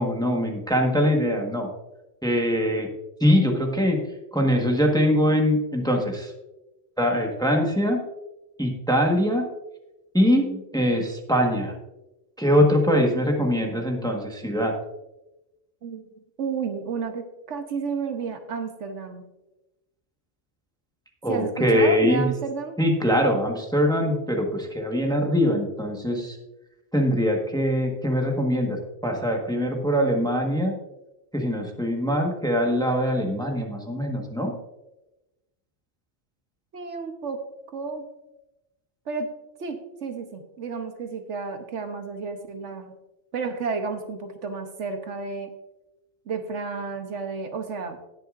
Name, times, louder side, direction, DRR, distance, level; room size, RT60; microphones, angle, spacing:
voice 1, 0.0-1.7 2.2-2.9 3.2-4.0 4.3-6.3 7.0-8.0 8.6-9.5 10.1-11.7 12.4-14.7 21.2-22.3 22.8-26.4 26.9-30.8 31.3-34.5, equal, 5° left, 1 dB, 1.3 m, -22 dB
voice 2, 16.4-19.3 21.3-22.8 36.7-37.4 37.7-38.1 39.1-39.3 39.6-42.9 43.3-45.5 46.3-48.0, right 5 dB, 70° right, 6 dB, 1.2 m, -31 dB
18.5 x 6.7 x 2.5 m, 0.97 s
omnidirectional pair, 1.3 m